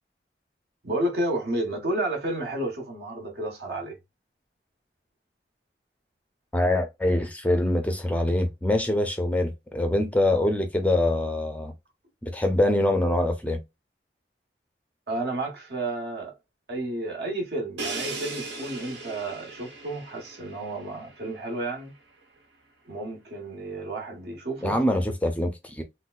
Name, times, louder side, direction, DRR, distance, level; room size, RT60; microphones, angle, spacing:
voice 1, 0.8-4.0 15.1-16.3 16.7-21.9 22.9-24.8, right 1 dB, 65° right, 1.4 m, -31 dB
voice 2, 6.5-11.7 12.2-13.6 24.6-25.8, left 1 dB, 10° left, 0.4 m, -24 dB
Crash cymbal, 17.8-21.6, right 3 dB, 90° right, 1.3 m, -37 dB
3.8 x 2.2 x 2.4 m
head